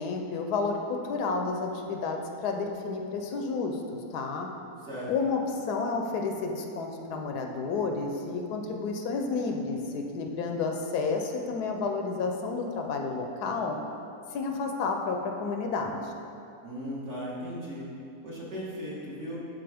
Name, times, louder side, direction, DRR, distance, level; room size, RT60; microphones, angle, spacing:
voice 1, 0.0-4.5 5.1-13.8 14.3-16.1, left 4 dB, 80° left, 3 dB, 1.2 m, -31 dB
voice 2, 16.6-17.9 18.2-19.4, equal, 45° right, -7 dB, 1.7 m, -37 dB
11.5 x 4.2 x 3.4 m, 2.7 s
omnidirectional pair, 1.7 m